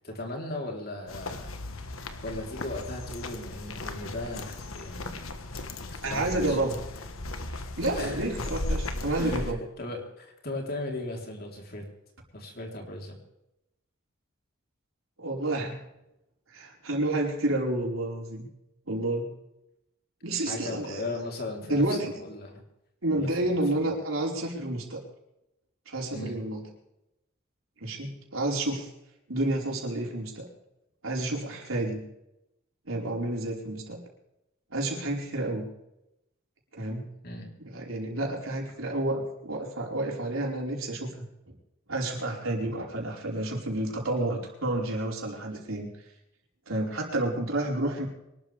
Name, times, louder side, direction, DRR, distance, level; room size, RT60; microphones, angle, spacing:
voice 1, 0.0-1.5 2.2-5.3 5.9-6.6 7.9-8.2 9.1-9.5 9.8-11.9 12.3-13.2 20.5-22.5 23.1-23.8 26.1-26.4 37.2-37.5, left 2 dB, 50° left, 1 dB, 3.8 m, -37 dB
sound 1, 1.1-9.5, left 2 dB, 90° left, 1.5 m, -36 dB
voice 2, 6.0-6.8 7.8-9.6 15.2-15.8 16.5-18.5 18.9-19.3 20.2-21.2 21.7-22.1 23.0-25.0 25.9-26.6 27.8-28.9 29.3-30.5 31.0-32.0 32.9-34.0 34.7-35.6 36.7-37.1 37.6-41.1 41.9-45.9 46.7-48.1, right 1 dB, 85° right, -1 dB, 5.0 m, -30 dB
24.5 x 12.5 x 3.5 m, 0.87 s
head